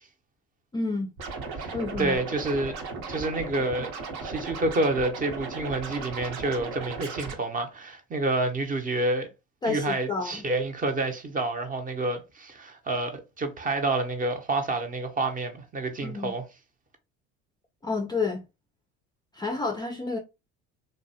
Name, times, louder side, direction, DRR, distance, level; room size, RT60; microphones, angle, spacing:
voice 1, 0.7-1.1 1.7-2.2 9.6-10.4 16.0-16.3 17.8-18.4 19.3-20.2, left 3 dB, 15° left, 0.3 m, -29 dB
Scratching (performance technique), 1.2-7.3, right 4 dB, 70° right, 0.8 m, -36 dB
voice 2, 1.6-2.7 3.1-3.9 4.2-9.3 9.6-16.5, right 2 dB, 25° right, 0.6 m, -28 dB
2.5 x 2.1 x 2.6 m
supercardioid pair, 80°, 32 cm